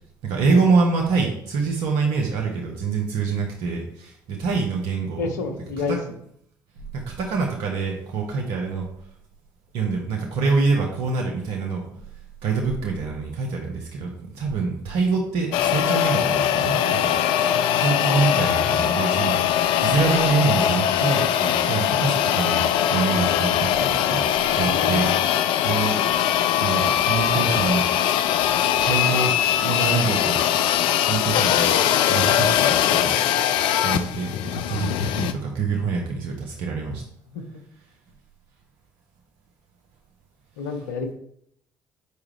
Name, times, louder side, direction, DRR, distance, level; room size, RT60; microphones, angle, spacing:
voice 1, 0.2-6.0 6.9-8.9 9.7-11.8 12.4-17.1 17.8-22.6 22.9-24.2 24.5-26.0 26.6-27.9 28.8-30.4 31.0-31.7 32.1-33.2 33.8-37.0, right 4 dB, 70° right, 0 dB, 1.1 m, -25 dB
voice 2, 5.2-6.0 24.6-25.2 37.3-37.4 40.6-41.1, left 5 dB, 85° left, 6 dB, 0.9 m, -29 dB
sound 1, 15.5-35.3, left 10 dB, 70° left, 0.5 m, -21 dB
8.2 x 4.9 x 3.3 m, 0.70 s
hypercardioid pair, 55°, 9 cm